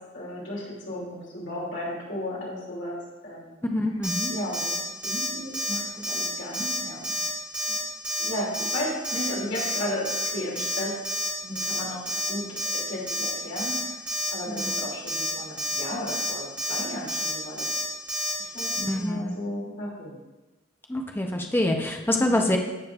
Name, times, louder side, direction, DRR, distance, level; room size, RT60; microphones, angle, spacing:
voice 1, 0.1-3.0 3.2-3.6 4.3-4.8 5.0-7.1 8.2-10.1 10.3-10.9 11.4-12.0 12.3-12.4 12.9-14.0 14.3-17.7 18.4-20.2 22.2-22.5, left 1 dB, 65° left, -5 dB, 2.6 m, -34 dB
voice 2, 3.7-4.3 14.5-14.7 18.8-19.3 20.9-22.6, left 1 dB, 10° left, 2 dB, 0.6 m, -26 dB
Alarm, 4.0-4.3 4.5-4.8 5.0-5.3 5.5-5.8 6.0-6.3 6.5-6.8 7.0-7.3 7.5-7.8 8.0-8.3 8.5-8.8 9.0-9.3 9.5-9.8 10.0-10.3 10.5-10.8 11.0-11.3 11.5-11.8 12.1-12.3 12.6-12.8 13.1-13.3 13.6-13.8 14.1-14.3 14.6-14.8 15.1-15.3 15.6-15.8 16.1-16.3 16.6-16.8 17.1-17.3 17.6-17.8 18.1-18.3 18.6-18.8, equal, 5° right, 2.1 m, -29 dB
15.0 x 5.1 x 2.4 m, 1.1 s
head